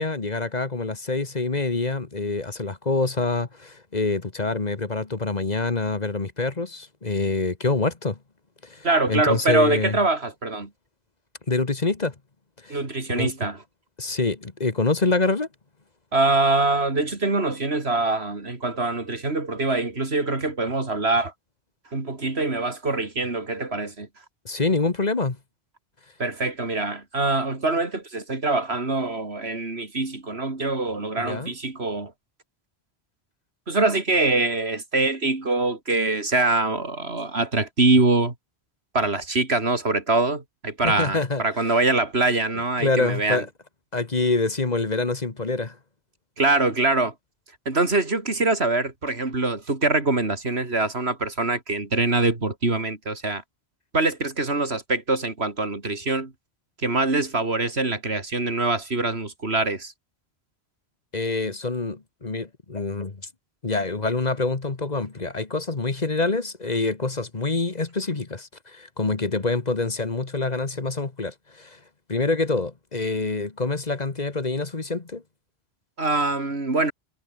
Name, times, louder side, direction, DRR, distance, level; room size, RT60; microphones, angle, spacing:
voice 1, 0.0-8.2 8.6-10.0 11.5-12.1 12.6-12.8 13.1-13.3 14.0-15.5 24.4-25.4 31.2-31.5 40.8-41.4 42.8-43.5 43.9-45.8 61.1-63.2 63.6-71.8 72.1-75.2, left 3 dB, 40° left, 1.7 m, -26 dB
voice 2, 8.8-10.7 12.7-13.6 16.1-21.3 21.9-24.1 26.2-32.1 33.7-38.3 38.9-43.4 46.4-47.1 47.7-53.4 53.9-56.3 56.8-59.9 76.0-76.9, right 3 dB, 85° right, 3.6 m, -24 dB
omnidirectional pair, 1.0 m